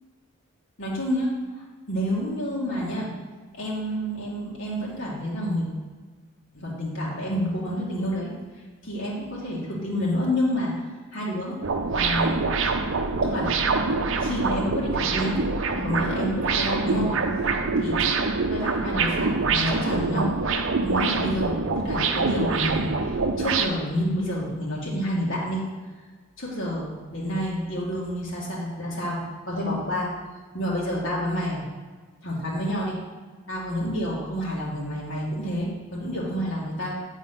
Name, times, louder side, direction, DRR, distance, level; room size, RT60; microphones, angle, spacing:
voice 1, 0.8-1.3 1.9-3.1 3.5-5.7 6.5-8.3 8.8-10.7 11.1-11.6 11.9-12.4 13.2-13.5 14.2-15.3 15.8-17.1 17.8-20.3 20.8-25.6 26.4-29.2 29.5-30.1 30.5-31.6 32.2-33.0 33.5-36.9, equal, 60° left, -6 dB, 2.1 m, -29 dB
sound 1, 11.6-23.7, right 4 dB, 65° right, 0.6 m, -25 dB
9.4 x 4.6 x 5.9 m, 1.4 s
head